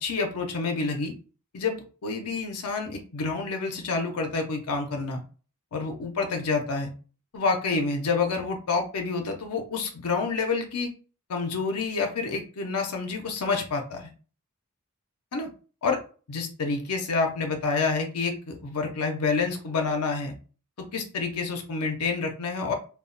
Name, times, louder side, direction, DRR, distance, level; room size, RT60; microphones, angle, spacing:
voice 1, 0.0-1.1 1.5-5.2 5.7-6.9 7.3-10.9 11.3-14.1 15.3-15.5 15.8-16.0 16.3-20.3 20.9-22.7, left 4 dB, 80° left, 3 dB, 0.6 m, -28 dB
2.2 x 2.1 x 3.7 m, 0.38 s
head